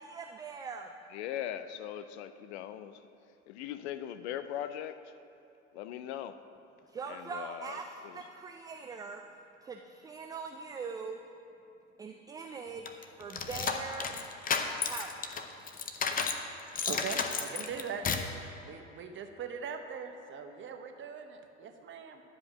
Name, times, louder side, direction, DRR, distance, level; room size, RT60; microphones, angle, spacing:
voice 1, 0.0-0.9 6.9-9.2 9.6-11.2 12.0-14.3 14.8-15.5, right 5 dB, 10° right, 0.3 m, -42 dB
voice 2, 1.1-3.0 3.5-5.0 5.7-6.4 7.1-7.8 8.0-8.2, left 11 dB, 60° left, 0.6 m, -40 dB
sound 1, 12.9-16.4 16.8-18.4, left 5 dB, 25° left, 0.7 m, -33 dB
voice 3, 16.9-18.1 18.6-22.2, right 6 dB, 30° right, 1.0 m, -41 dB
11.0 x 5.1 x 7.1 m
figure-of-eight pair, 75°, 37 cm